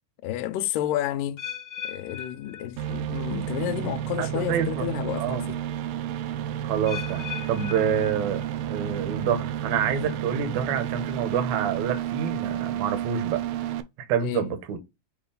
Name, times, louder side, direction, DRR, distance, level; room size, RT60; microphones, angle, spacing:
voice 1, 0.2-1.4 1.8-5.6 14.2-14.5, left 12 dB, 85° left, 2.2 m, -30 dB
sound 1, 1.4-3.4 3.6-4.1 4.7-4.8 6.8-8.8 9.1-9.6 10.2-10.3, left 9 dB, 50° left, 1.5 m, -39 dB
sound 2, 2.8-13.8, right 11 dB, 85° right, 2.2 m, -31 dB
voice 2, 4.2-4.9 5.2-5.4 6.6-8.4 8.7-13.4 14.1-14.8, right 7 dB, 65° right, 2.0 m, -27 dB
7.0 x 2.6 x 5.1 m
omnidirectional pair, 3.9 m